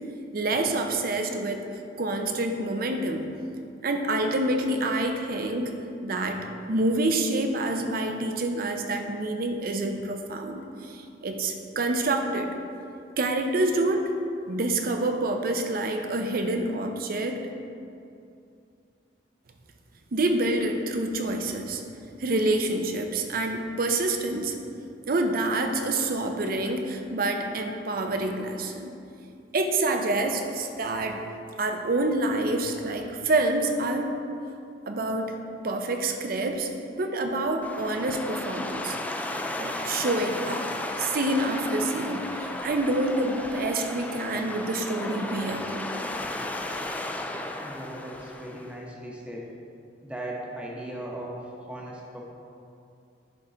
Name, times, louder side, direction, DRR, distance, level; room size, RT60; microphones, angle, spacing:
voice 1, 0.3-1.6 1.9-3.2 3.8-5.7 6.0-6.4 6.7-12.5 13.2-14.1 14.5-17.4 20.1-21.8 22.2-24.6 25.1-28.9 29.5-31.2 31.6-34.1 34.9-35.4 35.6-36.7 37.0-39.0 39.6-40.7 41.0-46.0, right 2 dB, 55° right, 4 dB, 0.6 m, -27 dB
sound 1, 37.6-48.8, left 1 dB, 10° left, 0.3 m, -34 dB
voice 2, 47.6-49.5 50.0-52.2, right 1 dB, 5° right, -3 dB, 1.0 m, -38 dB
10.5 x 3.7 x 3.9 m, 2.5 s
head